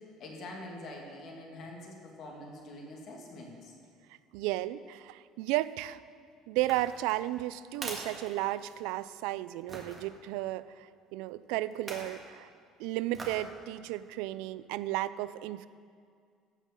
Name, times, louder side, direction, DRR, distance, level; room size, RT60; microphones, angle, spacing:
voice 1, 0.2-3.7, left 1 dB, 45° left, 0 dB, 2.2 m, -45 dB
voice 2, 4.3-6.0 6.5-12.5 12.8-15.7, right 16 dB, 85° right, 16 dB, 0.4 m, -34 dB
sound 1, 6.6-9.0 9.7-10.0 11.7-12.2 13.1-13.5 14.0-14.1, right 2 dB, 20° right, 1.7 m, -43 dB
15.5 x 5.5 x 7.4 m, 2.2 s
cardioid pair, 165°, 0 cm